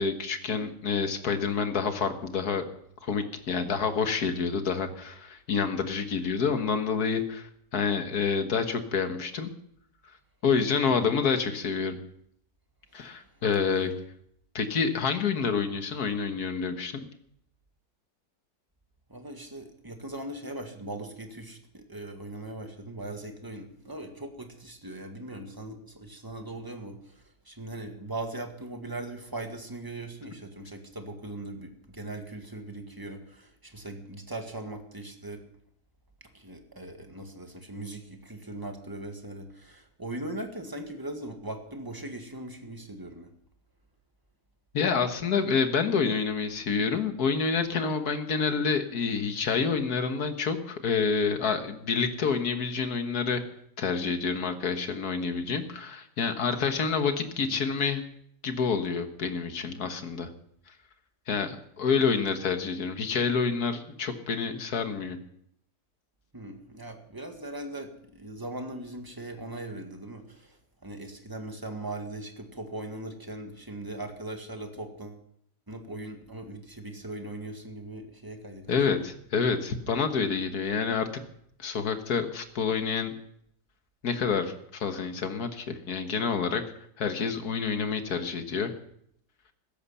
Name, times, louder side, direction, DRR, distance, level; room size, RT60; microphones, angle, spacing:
voice 1, 0.0-2.6 3.0-9.5 10.4-12.0 12.9-13.9 14.6-17.1 44.7-53.4 53.8-58.0 58.4-60.3 61.3-65.2 78.7-81.2 81.6-83.1 84.0-86.6 87.0-88.7, left 5 dB, 65° left, 7 dB, 1.9 m, -28 dB
voice 2, 10.9-11.2 12.9-13.1 13.6-13.9 19.1-35.4 36.2-43.3 57.4-57.6 66.3-75.2 75.7-78.8, right 2 dB, 10° right, 4 dB, 1.8 m, -40 dB
16.0 x 13.5 x 5.7 m, 0.70 s
omnidirectional pair, 1.8 m